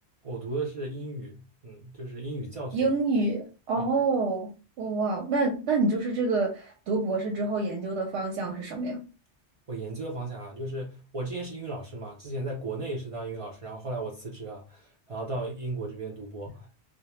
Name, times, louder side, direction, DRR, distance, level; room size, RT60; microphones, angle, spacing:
voice 1, 0.2-2.9 3.8-3.9 9.7-16.7, right 2 dB, 60° right, 0.3 m, -35 dB
voice 2, 2.7-4.5 4.8-9.0, right 3 dB, 85° right, 0.9 m, -27 dB
2.1 x 2.1 x 2.9 m
omnidirectional pair, 1.1 m